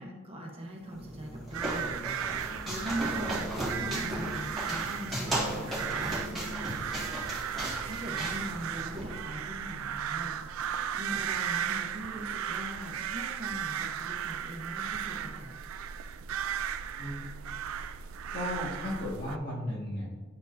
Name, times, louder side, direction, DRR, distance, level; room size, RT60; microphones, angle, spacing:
voice 1, 0.0-3.5 3.8-7.1 7.8-10.6 11.0-15.5, right 1 dB, 30° right, -1 dB, 0.8 m, -41 dB
sound 1, 0.9-9.0, right 1 dB, ahead, 1.9 m, -36 dB
sound 2, 1.5-19.4, right 9 dB, 75° right, 0.3 m, -36 dB
voice 2, 18.3-20.1, left 1 dB, 45° left, -4 dB, 1.7 m, -35 dB
9.5 x 4.4 x 2.6 m, 1.4 s
head